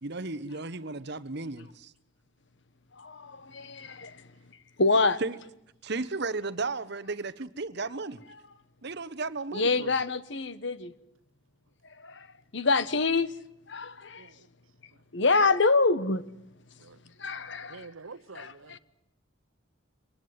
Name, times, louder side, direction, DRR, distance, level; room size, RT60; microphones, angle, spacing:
voice 1, 0.0-1.9 5.2-5.4 5.8-8.2 8.8-9.9, right 3 dB, 55° right, 1.1 m, -34 dB
voice 2, 3.0-4.1 4.8-5.2 9.5-10.9 12.0-12.3 12.5-13.3 13.7-14.2 15.1-16.2 17.2-17.9 18.4-18.8, left 3 dB, 60° left, 1.2 m, -26 dB
voice 3, 17.7-18.8, right 4 dB, 85° right, 1.1 m, -47 dB
25.0 x 19.0 x 9.5 m
head